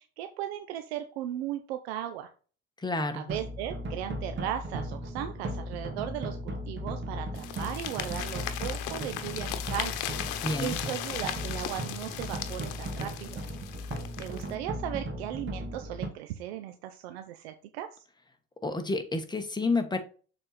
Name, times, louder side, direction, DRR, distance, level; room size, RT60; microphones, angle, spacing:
voice 1, 0.0-2.3 3.1-9.9 10.6-13.4 14.2-18.0, right 11 dB, 90° right, 0.7 m, -37 dB
voice 2, 2.8-3.3 10.4-10.8 18.6-20.0, left 3 dB, 15° left, 1.4 m, -29 dB
sound 1, 3.3-16.1, equal, 40° right, 2.1 m, -37 dB
sound 2, 7.4-14.5, left 12 dB, 75° left, 1.0 m, -37 dB
6.8 x 4.3 x 4.1 m
supercardioid pair, 75°, 31 cm